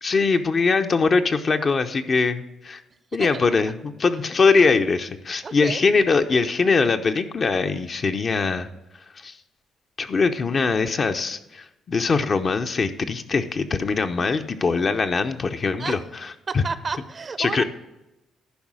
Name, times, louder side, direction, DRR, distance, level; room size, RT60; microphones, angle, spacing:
voice 1, 0.0-2.8 3.1-8.7 9.2-9.4 10.0-16.0 16.5-16.6 17.4-17.6, left 4 dB, 40° left, 7 dB, 0.8 m, -22 dB
voice 2, 5.4-5.8 15.8-16.0 16.5-17.6, right 4 dB, 40° right, 13 dB, 0.7 m, -31 dB
11.5 x 4.8 x 6.2 m, 0.95 s
cardioid pair, 90°, 0 cm